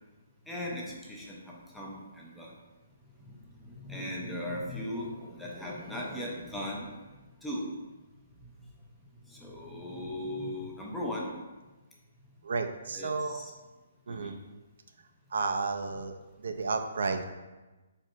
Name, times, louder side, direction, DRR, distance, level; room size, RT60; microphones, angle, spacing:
voice 1, 0.5-2.5 3.0-7.7 8.4-8.5 9.2-11.3 12.9-13.5 14.1-14.4, left 1 dB, 5° left, -4 dB, 0.4 m, -38 dB
voice 2, 12.4-13.4 14.1-14.4 15.3-17.2, right 4 dB, 60° right, 6 dB, 0.4 m, -32 dB
4.9 x 4.4 x 2.4 m, 1.2 s
hypercardioid pair, 180°, 0 cm